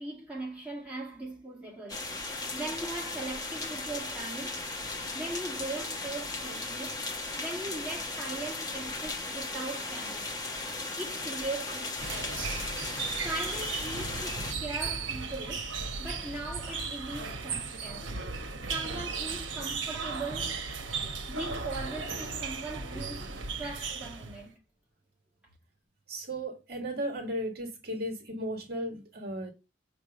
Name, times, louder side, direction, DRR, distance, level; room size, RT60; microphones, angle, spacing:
voice 1, 0.0-2.2 2.5-4.6 5.1-7.0 7.4-10.3 11.0-12.5 13.2-15.7 16.0-20.6 21.3-24.6, right 2 dB, 5° right, 1.9 m, -40 dB
sound 1, 1.9-14.5, left 3 dB, 20° left, 1.0 m, -36 dB
sound 2, 12.0-24.5, right 4 dB, 85° right, 1.1 m, -36 dB
voice 2, 26.1-29.5, equal, 55° right, 1.7 m, -35 dB
6.6 x 3.3 x 5.4 m
head